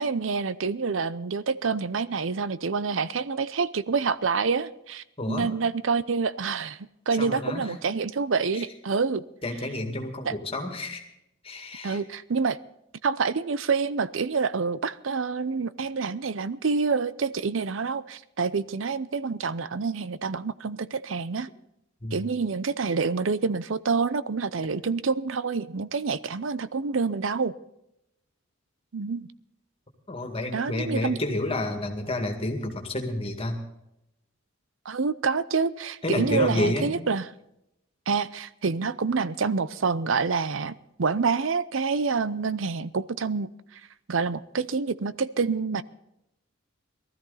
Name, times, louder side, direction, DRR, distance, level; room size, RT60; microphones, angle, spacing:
voice 1, 0.0-6.8 7.1-9.2 10.3-10.4 11.8-12.6 13.0-21.5 22.1-27.5 28.9-29.3 30.5-31.2 34.9-37.3 38.1-40.7 41.0-43.8 44.1-45.8, right 5 dB, 70° right, 16 dB, 0.6 m, -27 dB
voice 2, 5.2-5.5 7.2-7.7 8.5-8.6 9.4-11.0 11.4-12.0 22.0-22.2 30.1-33.6 36.0-37.0, left 1 dB, 30° left, 4 dB, 2.2 m, -30 dB
19.5 x 13.5 x 4.2 m, 0.83 s
head